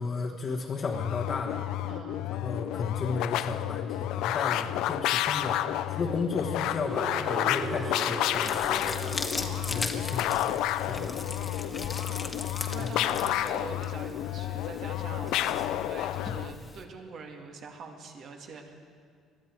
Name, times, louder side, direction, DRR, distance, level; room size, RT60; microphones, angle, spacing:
voice 1, 0.0-1.6 2.3-5.6 5.9-9.0 9.6-11.3 12.8-13.0, left 4 dB, 45° left, -1 dB, 1.4 m, -34 dB
sound 1, 0.9-16.5, left 13 dB, 75° left, 0.4 m, -30 dB
voice 2, 1.9-2.3 4.4-4.7 9.4-9.9 10.9-11.3 11.6-12.1 12.7-18.7, right 4 dB, 60° right, 3 dB, 2.2 m, -44 dB
sound 2, 6.8-12.7, right 3 dB, 35° right, 1.2 m, -40 dB
sound 3, 8.3-16.8, left 3 dB, 30° left, 1.5 m, -39 dB
21.5 x 12.5 x 4.7 m, 2.2 s
supercardioid pair, 75°, 0 cm